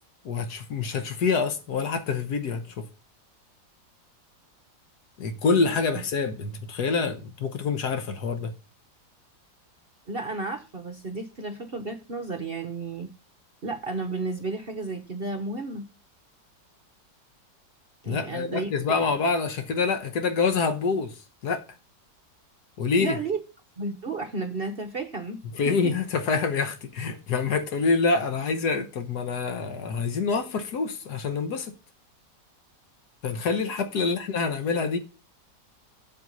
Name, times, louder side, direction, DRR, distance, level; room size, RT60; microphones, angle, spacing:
voice 1, 0.2-2.8 5.2-8.5 18.1-21.6 22.8-23.2 25.5-31.7 33.2-35.0, left 4 dB, 65° left, 1.6 m, -26 dB
voice 2, 10.1-13.1 13.6-15.9 18.0-18.7 23.0-23.4 23.8-25.4, right 3 dB, 40° right, 0.9 m, -32 dB
7.9 x 7.7 x 5.4 m
omnidirectional pair, 2.0 m